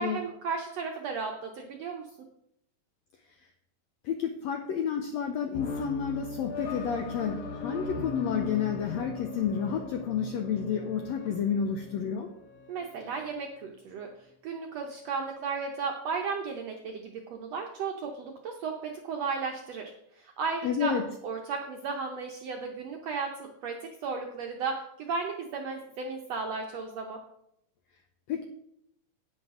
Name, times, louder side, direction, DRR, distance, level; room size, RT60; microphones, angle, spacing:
voice 1, 0.0-2.1 12.7-14.1 14.4-20.9 21.2-27.2, right 5 dB, 75° right, 2 dB, 1.5 m, -34 dB
voice 2, 4.0-12.3 20.6-21.0 28.3-28.4, left 7 dB, 85° left, 4 dB, 1.5 m, -30 dB
sound 1, 5.5-12.9, left 4 dB, 65° left, 2.5 m, -39 dB
10.5 x 9.3 x 3.7 m, 0.77 s
omnidirectional pair, 4.0 m